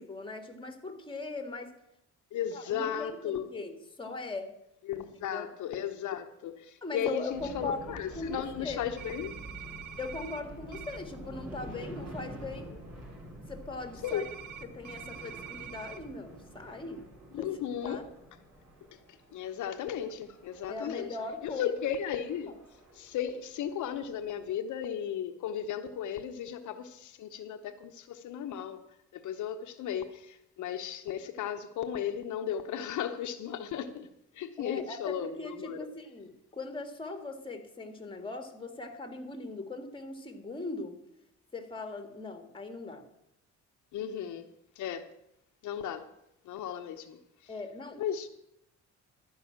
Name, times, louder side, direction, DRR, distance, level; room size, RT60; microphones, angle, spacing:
voice 1, 0.0-1.7 2.5-4.5 4.9-5.5 6.8-7.8 8.1-8.8 10.0-12.8 13.3-14.2 14.6-17.0 17.4-17.5 17.8-18.0 20.7-21.7 22.5-22.6 34.6-41.0 41.5-43.1 47.5-48.0, left 3 dB, 15° left, 1.7 m, -40 dB
voice 2, 2.3-3.5 4.9-9.3 14.0-14.2 17.3-18.0 18.9-19.0 19.3-21.1 21.4-22.5 22.9-28.8 29.1-34.1 34.3-35.9 43.9-44.5 44.8-45.0 45.6-46.1 46.4-47.2 48.0-48.4, left 9 dB, 75° left, 0.9 m, -35 dB
sound 1, 7.3-24.5, right 1 dB, 55° right, 3.7 m, -48 dB
sound 2, 9.0-10.4 10.7-11.0 14.0-16.0, right 10 dB, 80° right, 1.0 m, -45 dB
12.0 x 5.5 x 8.6 m
cardioid pair, 90°, 30 cm